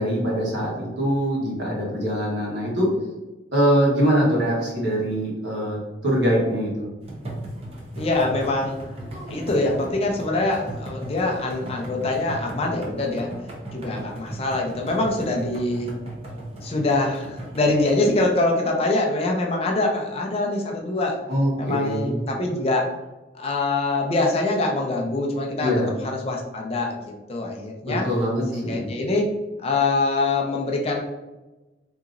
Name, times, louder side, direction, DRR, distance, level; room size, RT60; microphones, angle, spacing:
voice 1, 0.0-2.9 3.5-6.9 21.3-22.2 25.6-25.9 27.8-28.9, equal, 75° right, -4 dB, 1.3 m, -23 dB
sound 1, 7.0-18.2, right 1 dB, 35° right, 0.7 m, -36 dB
voice 2, 8.0-8.8 9.3-13.3 13.7-15.9 16.6-21.2 21.6-22.9 23.3-25.7 26.0-27.0 27.3-28.1 28.5-29.3 29.6-31.0, left 2 dB, 35° left, 0 dB, 0.5 m, -24 dB
3.7 x 2.9 x 2.5 m, 1.1 s
head